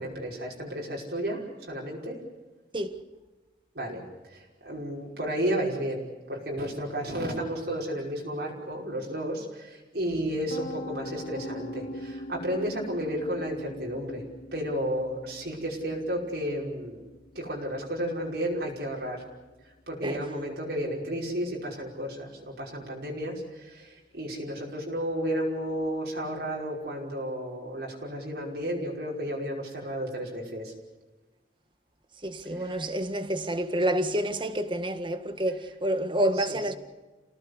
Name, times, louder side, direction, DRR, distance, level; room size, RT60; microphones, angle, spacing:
voice 1, 0.0-2.2 3.7-14.2 14.5-17.0 17.3-19.2 19.6-30.7 32.6-32.7 36.4-36.5, equal, 65° right, 5.6 m, -32 dB
Piano, 10.1-22.0, left 1 dB, 85° left, 3.3 m, -44 dB
voice 2, 32.2-36.8, right 1 dB, 30° right, 1.7 m, -28 dB
29.5 x 18.0 x 8.2 m
head